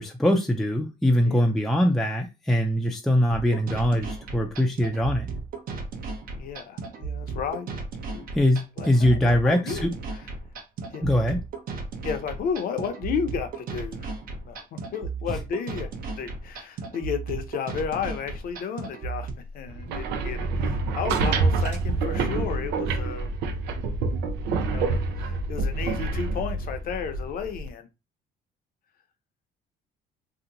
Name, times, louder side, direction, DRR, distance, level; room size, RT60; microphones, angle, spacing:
voice 1, 0.0-5.3 8.3-9.9 11.0-11.4 15.3-15.4, left 1 dB, ahead, 0.4 m, -22 dB
sound 1, 3.3-19.3, right 4 dB, 55° right, 0.8 m, -35 dB
voice 2, 6.4-7.7 8.1-8.3 8.8-9.9 10.9-11.0 12.0-15.9 16.2-19.3 19.5-23.3 24.6-27.9, left 7 dB, 60° left, 0.7 m, -33 dB
sound 2, 19.7-27.7, right 3 dB, 90° right, 0.6 m, -27 dB
2.8 x 2.1 x 3.8 m
cardioid pair, 110°, 17 cm